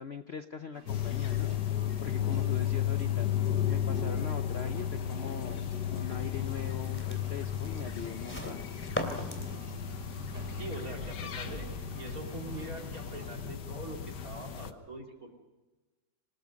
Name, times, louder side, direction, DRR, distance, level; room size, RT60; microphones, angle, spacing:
voice 1, 0.0-1.5 2.0-3.3 3.7-8.6, left 6 dB, 50° left, 8 dB, 0.8 m, -41 dB
sound 1, 0.7-13.4, right 3 dB, 75° right, 6.5 m, -52 dB
sound 2, 0.9-14.7, left 10 dB, 70° left, 1.7 m, -34 dB
sound 3, 5.6-11.4, equal, 5° left, 2.9 m, -43 dB
voice 2, 10.6-15.3, right 2 dB, 50° right, 1 dB, 3.6 m, -43 dB
27.0 x 19.0 x 5.3 m, 1.2 s
omnidirectional pair, 1.9 m